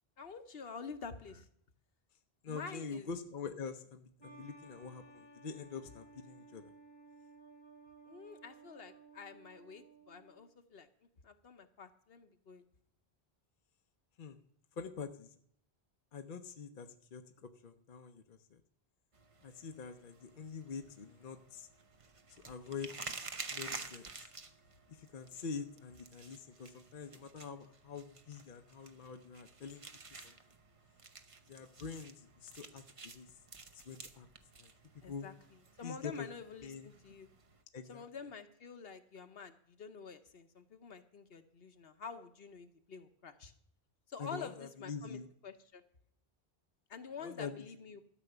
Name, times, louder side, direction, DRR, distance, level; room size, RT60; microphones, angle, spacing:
voice 1, 0.2-1.5 2.5-3.1 8.1-10.9 11.2-12.7 35.0-35.3 35.8-37.3 37.9-43.5 44.1-45.8 46.9-48.0, left 5 dB, 70° left, 8 dB, 1.2 m, -48 dB
voice 2, 2.4-6.7 14.2-14.4 14.7-15.3 16.1-18.6 19.4-21.7 22.3-22.9 23.5-24.3 24.9-29.8 30.1-30.4 31.5-33.3 33.7-34.3 34.6-35.3 35.8-36.3 36.6-36.9 37.7-38.0 44.2-45.3 47.2-47.7, left 5 dB, 55° left, 6 dB, 0.8 m, -45 dB
sound 1, 4.2-10.5, right 3 dB, 25° left, 1.0 m, -58 dB
sound 2, 19.1-37.6, right 4 dB, 35° right, 0.8 m, -51 dB
13.0 x 6.1 x 8.0 m, 0.69 s
omnidirectional pair, 1.0 m